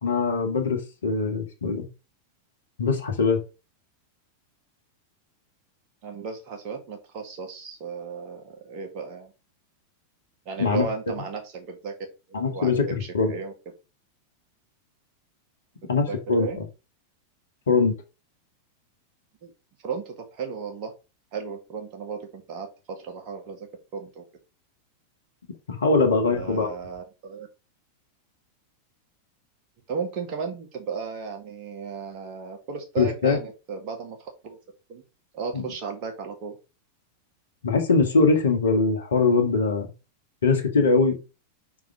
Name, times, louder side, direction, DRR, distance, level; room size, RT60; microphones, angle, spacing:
voice 1, 0.0-1.9 2.8-3.4 10.6-10.9 12.3-12.9 13.1-13.3 15.9-16.6 17.7-17.9 25.7-26.7 33.0-33.4 35.5-35.6 37.6-39.9 40.4-41.2, left 4 dB, 65° left, 4 dB, 1.7 m, -22 dB
voice 2, 6.0-9.3 10.5-12.0 12.3-13.5 15.8-16.6 19.4-19.5 19.8-20.9 21.3-24.2 26.0-27.5 29.9-34.6 34.9-35.0 35.3-36.6, right 5 dB, 40° right, 3 dB, 2.1 m, -35 dB
5.7 x 4.8 x 5.0 m, 0.30 s
figure-of-eight pair, 90°, 0 cm